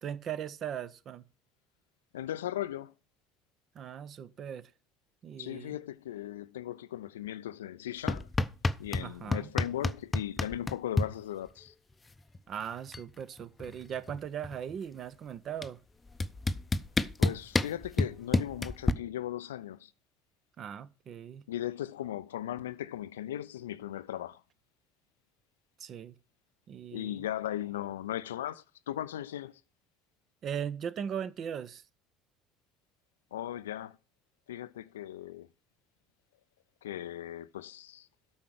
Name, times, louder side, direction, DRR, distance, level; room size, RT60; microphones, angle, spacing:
voice 1, 0.0-1.2 3.7-4.7 5.2-5.8 9.0-9.5 12.5-15.8 20.6-21.4 25.8-26.2 26.7-27.2 30.4-31.8, right 8 dB, 45° right, 0.7 m, -39 dB
voice 2, 2.1-2.9 5.4-8.3 8.8-11.7 17.2-19.9 21.5-24.4 26.9-29.6 33.3-34.0 34.5-35.5 36.8-38.1, left 12 dB, 70° left, 0.4 m, -37 dB
sound 1, 8.1-9.1 9.3-11.1 12.3-12.4 12.7-13.1 13.4-14.7 15.6-15.7 16.2-18.9, left 2 dB, 20° left, 0.6 m, -28 dB
8.7 x 5.7 x 6.3 m
figure-of-eight pair, 60°, 0 cm